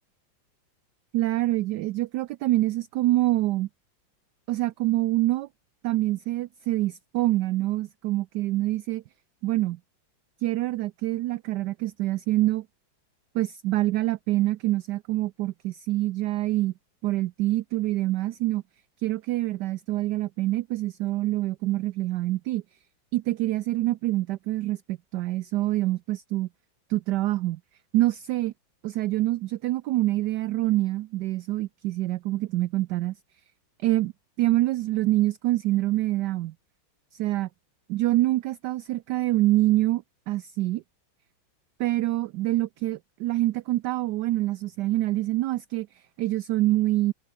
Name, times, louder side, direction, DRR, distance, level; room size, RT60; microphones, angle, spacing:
voice 1, 1.1-3.7 4.5-5.5 5.8-9.0 9.4-9.8 10.4-12.7 13.3-16.7 17.0-18.6 19.0-22.6 23.1-26.5 26.9-27.6 27.9-28.5 28.8-33.1 33.8-34.1 34.4-36.5 37.1-37.5 37.9-40.8 41.8-47.1, right 16 dB, 75° right, 1.0 m, -26 dB
omnidirectional pair, 2.2 m